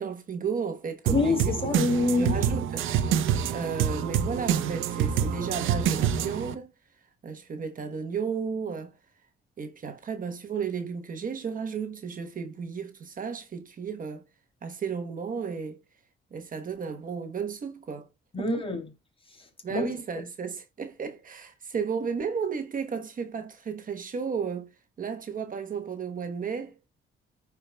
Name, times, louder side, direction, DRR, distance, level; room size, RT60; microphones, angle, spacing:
voice 1, 0.0-1.5 2.1-2.9 3.2-6.7 7.2-8.9 9.6-14.2 14.6-15.8 16.3-18.1 18.4-18.5 19.6-24.7 25.0-26.7, right 6 dB, 45° right, 1.1 m, -33 dB
voice 2, 1.1-2.4 18.3-18.9 19.4-19.9, left 2 dB, 30° left, 2.8 m, -26 dB
sound 1, 1.1-6.5, right 8 dB, 85° right, 0.8 m, -26 dB
14.0 x 4.8 x 2.2 m
cardioid pair, 90°, 20 cm